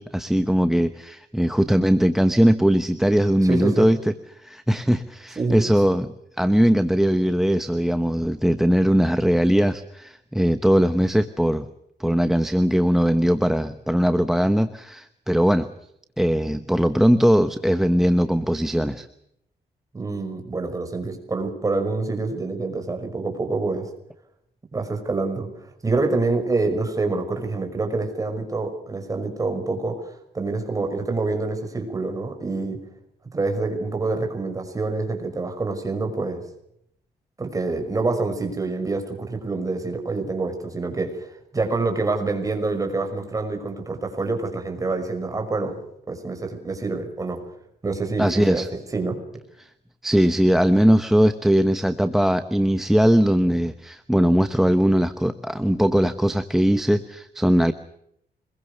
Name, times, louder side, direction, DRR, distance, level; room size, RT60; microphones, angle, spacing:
voice 1, 0.0-4.0 4.4-11.7 12.0-15.7 16.2-19.1 48.2-48.7 49.6-49.7 50.0-57.7, equal, ahead, 11 dB, 1.0 m, -20 dB
voice 2, 3.4-3.8 5.4-5.7 19.9-23.9 24.7-32.8 33.3-36.4 37.4-45.8 46.1-47.4 47.8-48.6 48.9-49.2, right 3 dB, 20° right, 4 dB, 5.7 m, -26 dB
25.5 x 22.0 x 6.7 m, 0.75 s
cardioid pair, 155°, 17 cm